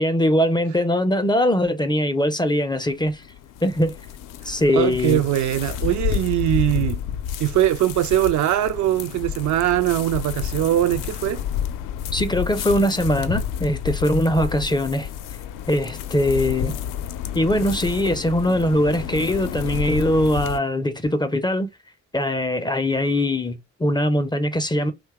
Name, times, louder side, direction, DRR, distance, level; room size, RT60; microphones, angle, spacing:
voice 1, 0.0-3.2 3.6-4.0 4.4-5.2 12.1-15.1 15.7-16.8 17.3-21.7 22.1-24.9, left 1 dB, 15° left, 0.4 m, -21 dB
sound 1, 2.9-20.6, left 9 dB, 65° left, 0.5 m, -30 dB
voice 2, 4.7-7.0 7.4-11.4, right 13 dB, 55° right, 0.4 m, -21 dB
2.7 x 2.2 x 3.4 m
hypercardioid pair, 55°, 35 cm